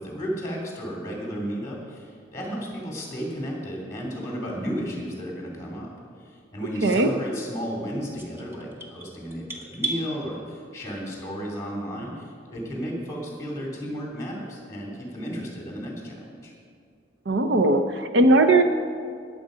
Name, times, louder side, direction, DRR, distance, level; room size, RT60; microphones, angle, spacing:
voice 1, 0.0-5.9 6.2-16.5, equal, 15° left, -1 dB, 3.0 m, -33 dB
voice 2, 6.8-7.1 17.3-18.6, right 2 dB, 75° right, 8 dB, 0.8 m, -19 dB
sound 1, 8.2-10.0, right 3 dB, 15° right, 1.2 m, -34 dB
20.5 x 7.7 x 5.1 m, 2.2 s
head